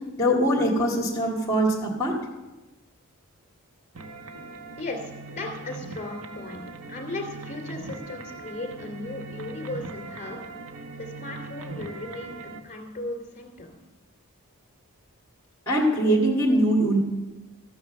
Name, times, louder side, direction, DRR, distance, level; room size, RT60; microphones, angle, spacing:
voice 1, 0.2-2.2 15.7-17.0, right 1 dB, 15° left, -2 dB, 2.2 m, -22 dB
sound 1, 3.9-12.6, right 3 dB, 75° right, 1.0 m, -40 dB
voice 2, 4.8-10.4 11.0-13.7, left 2 dB, 35° left, 2 dB, 2.9 m, -36 dB
14.5 x 9.0 x 6.7 m, 1.1 s
head